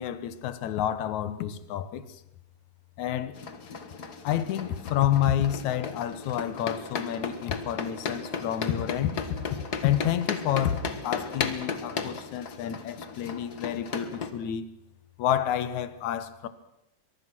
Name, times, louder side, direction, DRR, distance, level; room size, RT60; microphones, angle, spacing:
voice 1, 0.0-2.2 3.0-3.4 4.2-9.4 9.8-14.7 15.2-16.5, left 10 dB, 65° left, 2.2 m, -29 dB
sound 1, 3.4-14.3, left 5 dB, 45° left, 1.3 m, -35 dB
23.5 x 23.0 x 6.2 m
omnidirectional pair, 4.0 m